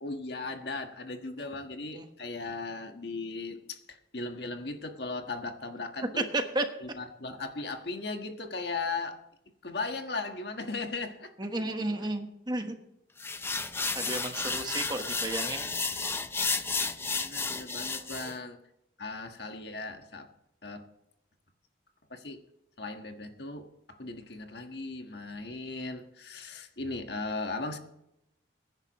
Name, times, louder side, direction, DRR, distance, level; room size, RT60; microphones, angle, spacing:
voice 1, 0.0-6.3 6.8-9.2 9.6-11.3 11.8-12.1 13.9-14.0 14.2-14.7 17.2-18.6 19.0-20.3 20.6-20.9 22.1-22.4 22.8-27.8, left 3 dB, 60° left, 5 dB, 1.5 m, -37 dB
voice 2, 6.2-6.6 11.4-12.7 13.9-16.0 18.2-18.3, right 2 dB, 25° right, 6 dB, 1.2 m, -33 dB
sound 1, 13.2-18.3, left 4 dB, 15° left, 0.6 m, -32 dB
21.5 x 10.5 x 3.1 m, 0.82 s
head